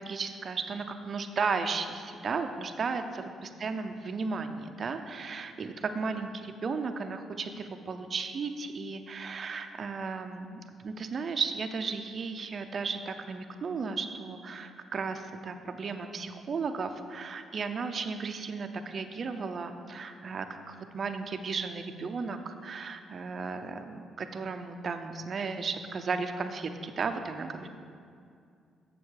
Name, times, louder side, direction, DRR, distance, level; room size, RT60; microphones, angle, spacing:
voice 1, 0.0-27.7, right 4 dB, 45° right, 7 dB, 0.7 m, -35 dB
7.2 x 6.9 x 6.4 m, 2.4 s
cardioid pair, 90°, 0 cm